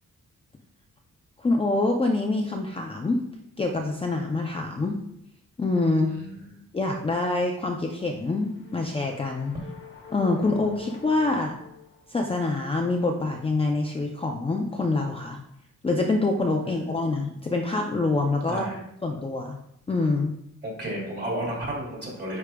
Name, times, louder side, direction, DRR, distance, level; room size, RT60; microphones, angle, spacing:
voice 1, 1.4-3.2 3.6-5.0 5.6-6.2 6.7-9.5 10.1-11.5 12.1-15.4 15.8-18.7 19.0-19.6 19.9-20.3, left 2 dB, 20° left, 1 dB, 0.4 m, -25 dB
voice 2, 6.2-6.5 18.5-18.8 20.6-22.4, right 1 dB, 30° right, -3 dB, 2.5 m, -32 dB
sound 1, 8.1-12.4, left 8 dB, 35° left, 1.1 m, -46 dB
9.6 x 4.8 x 2.3 m, 0.74 s
wide cardioid pair, 165°, 33 cm